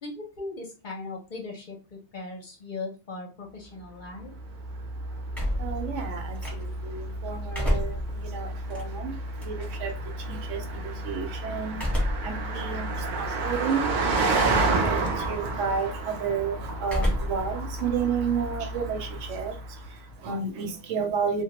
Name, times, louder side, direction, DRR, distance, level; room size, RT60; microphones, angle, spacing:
voice 1, 0.0-4.3, left 3 dB, 50° left, 0.6 m, -38 dB
Car passing by, 4.2-19.9, right 2 dB, 55° right, 0.6 m, -31 dB
sound 1, 5.3-6.9 7.3-9.9 11.7-12.4 12.9-13.0 14.0-14.5 14.8-15.3 16.8-17.5 17.8-19.2, equal, ahead, 0.8 m, -30 dB
voice 2, 5.6-9.2 9.4-11.8 12.2-21.4, right 6 dB, 85° right, 1.0 m, -32 dB
2.2 x 2.1 x 2.8 m
omnidirectional pair, 1.2 m